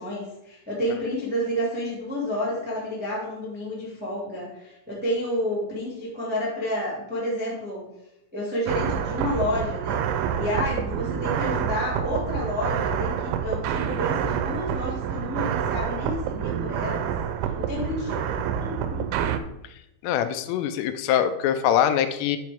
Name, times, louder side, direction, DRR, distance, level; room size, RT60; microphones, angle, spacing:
voice 1, 0.0-7.8 8.3-10.0 10.3-17.1 17.6-19.1, left 1 dB, 5° right, -7 dB, 0.9 m, -30 dB
sound 1, 8.7-19.4, right 8 dB, 85° right, 2.3 m, -27 dB
voice 2, 20.0-22.4, left 10 dB, 85° left, 10 dB, 2.7 m, -23 dB
11.0 x 4.9 x 3.5 m, 0.84 s
omnidirectional pair, 5.0 m